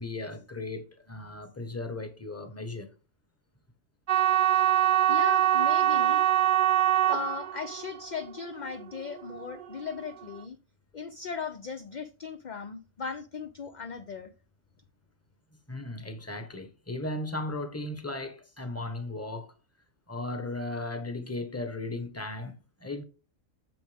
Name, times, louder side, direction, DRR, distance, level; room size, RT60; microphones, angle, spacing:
voice 1, 0.0-2.9 15.7-19.5 20.1-23.0, left 2 dB, 10° left, 1.2 m, -36 dB
sound 1, 4.1-10.2, right 12 dB, 60° right, 0.5 m, -24 dB
voice 2, 4.7-6.2 7.1-10.6 10.9-14.3, left 6 dB, 45° left, 0.7 m, -38 dB
9.1 x 7.5 x 3.5 m
omnidirectional pair, 1.3 m